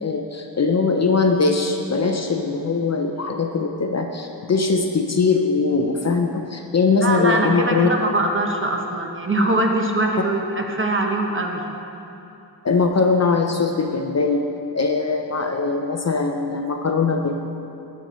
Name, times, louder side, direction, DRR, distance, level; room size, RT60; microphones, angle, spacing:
voice 1, 0.0-7.9 12.6-14.4 14.7-17.3, left 4 dB, 40° left, 4 dB, 0.5 m, -21 dB
voice 2, 7.0-11.6, right 2 dB, 30° right, 2 dB, 0.8 m, -22 dB
14.5 x 5.8 x 3.0 m, 2.8 s
wide cardioid pair, 115°, 41 cm